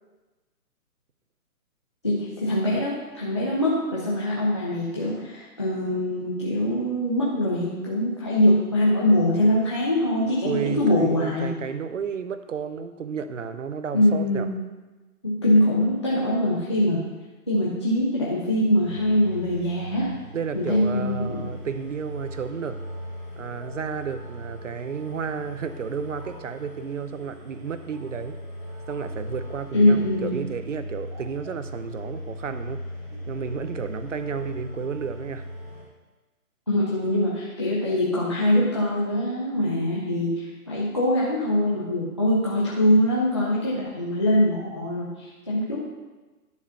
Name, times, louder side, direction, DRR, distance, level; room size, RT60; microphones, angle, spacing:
voice 1, 2.0-11.5 13.9-14.5 15.2-17.0 17.5-20.1 20.5-21.4 29.7-30.3 36.7-45.9, left 1 dB, 20° left, -8 dB, 0.6 m, -23 dB
voice 2, 10.4-14.5 20.3-22.8 23.4-28.4 28.9-32.8 33.3-35.5, right 6 dB, 55° right, 10 dB, 0.7 m, -32 dB
sound 1, 18.8-35.8, equal, 10° right, 1.2 m, -38 dB
10.5 x 4.6 x 5.7 m, 1.2 s
hypercardioid pair, 175°, 45 cm